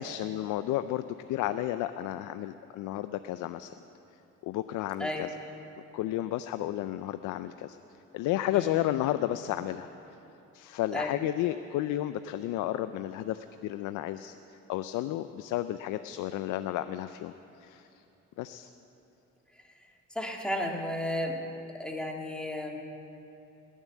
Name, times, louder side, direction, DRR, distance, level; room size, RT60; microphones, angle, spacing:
voice 1, 0.0-3.7 4.4-5.3 5.9-7.8 8.1-9.9 10.5-17.3 17.6-17.9 18.4-18.7, left 13 dB, 90° left, 11 dB, 0.5 m, -32 dB
voice 2, 5.0-5.3 8.5-8.8 10.9-11.2 19.5-21.4 21.7-22.8, left 1 dB, 5° left, 0 dB, 2.1 m, -34 dB
19.5 x 7.4 x 9.3 m, 2.9 s
cardioid pair, 90°, 30 cm